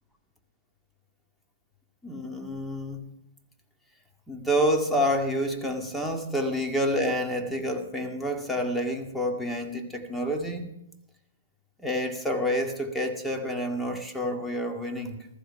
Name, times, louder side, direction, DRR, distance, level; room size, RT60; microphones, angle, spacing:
voice 1, 2.0-3.1 4.3-10.7 11.8-15.3, equal, ahead, 2 dB, 2.1 m, -28 dB
15.0 x 14.5 x 5.8 m, 0.84 s
hypercardioid pair, 125°, 0 cm